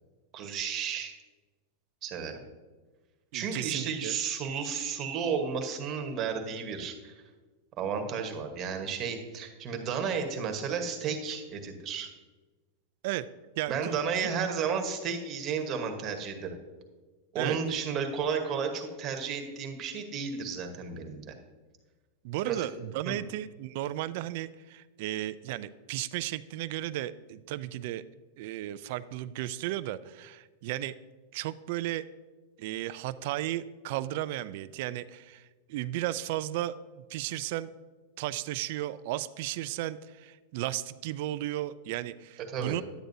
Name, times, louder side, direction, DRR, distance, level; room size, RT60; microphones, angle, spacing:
voice 1, 0.3-1.1 2.0-2.3 3.3-7.2 7.8-12.1 13.7-16.6 17.3-21.3 22.4-22.7 23.0-23.1 42.5-42.7, right 6 dB, 35° right, 4 dB, 1.1 m, -32 dB
voice 2, 3.3-4.2 13.0-13.3 13.6-13.9 17.4-17.6 22.2-28.0 28.4-30.9 31.3-32.0 32.6-36.8 37.1-37.7 38.2-42.8, right 14 dB, 60° right, 15 dB, 0.3 m, -34 dB
10.0 x 9.1 x 2.7 m, 1.3 s
supercardioid pair, 135°, 0 cm